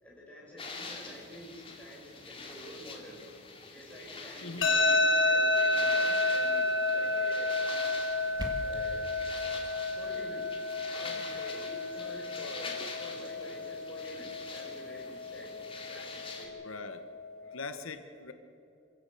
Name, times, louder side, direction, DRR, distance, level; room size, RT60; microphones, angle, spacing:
voice 1, 0.0-3.2 3.7-7.5 8.6-9.1 9.9-10.4 10.9-15.5 15.9-16.5 17.4-17.5, equal, 5° left, -6 dB, 6.5 m, -48 dB
sound 1, 0.6-16.5, left 4 dB, 25° left, 2.5 m, -45 dB
voice 2, 4.4-4.7 7.9-8.1 11.1-11.2 16.6-17.0 17.5-18.3, left 3 dB, 85° left, 8 dB, 1.1 m, -42 dB
sound 2, 4.6-17.6, left 2 dB, 65° left, 1.6 m, -31 dB
sound 3, 8.0-9.0, equal, 20° right, 1.8 m, -40 dB
26.5 x 16.0 x 6.8 m, 2.8 s
head